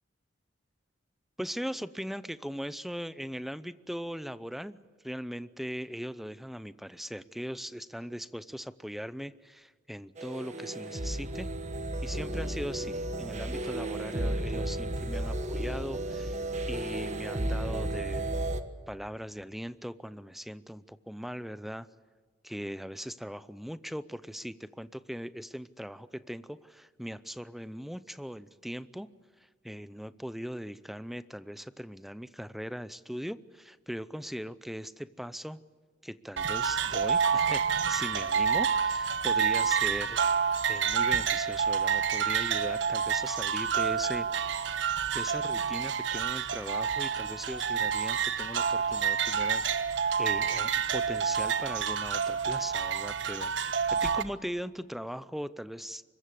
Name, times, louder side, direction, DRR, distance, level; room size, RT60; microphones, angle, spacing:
voice 1, 1.4-4.8 5.0-11.5 12.0-18.3 18.9-21.9 22.4-29.1 29.6-35.6 36.0-40.2 40.7-44.3 44.7-44.8 45.1-49.8 50.2-53.5 53.9-56.0, equal, ahead, 15 dB, 0.6 m, -39 dB
sound 1, 10.2-18.6, right 1 dB, 40° right, 1.4 m, -33 dB
sound 2, 36.4-54.2, right 6 dB, 70° right, 1.2 m, -28 dB
25.0 x 22.0 x 8.3 m, 1.5 s
head